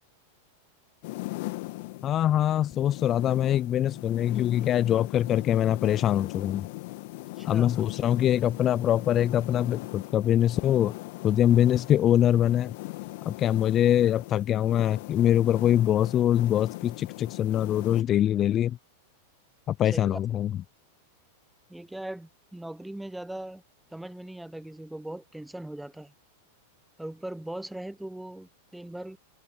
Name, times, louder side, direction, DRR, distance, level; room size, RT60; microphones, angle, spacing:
sound 1, 1.0-18.0, left 22 dB, 55° left, 2.4 m, -40 dB
voice 1, 2.0-6.7 7.5-10.9 11.2-12.7 13.3-18.8 19.7-20.5, left 11 dB, 30° left, 0.6 m, -23 dB
voice 2, 7.4-7.7 19.9-20.2 21.7-23.6 23.9-26.1 27.0-29.2, right 1 dB, 5° right, 1.3 m, -39 dB
figure-of-eight pair, 95°, 0 cm